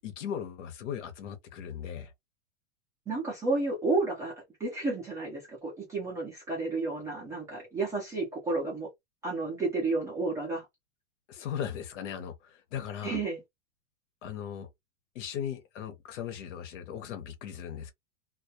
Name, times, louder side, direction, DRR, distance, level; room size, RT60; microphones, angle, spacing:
voice 1, 0.0-2.1 11.3-13.2 14.2-14.7 15.1-17.9, left 9 dB, 65° left, 0.8 m, -38 dB
voice 2, 3.1-4.3 4.6-8.9 9.2-10.6 13.0-13.4, right 3 dB, 10° right, 0.4 m, -31 dB
2.3 x 2.1 x 2.6 m
supercardioid pair, 145°, 39 cm